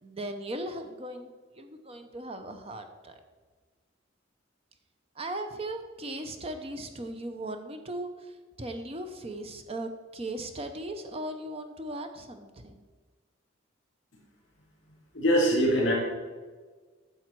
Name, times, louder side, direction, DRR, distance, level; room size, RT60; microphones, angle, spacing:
voice 1, 0.0-1.3 1.6-3.2 5.2-12.8, right 1 dB, 30° right, 7 dB, 0.6 m, -38 dB
voice 2, 15.1-15.9, equal, 65° left, -7 dB, 3.3 m, -22 dB
10.5 x 7.1 x 4.6 m, 1.4 s
head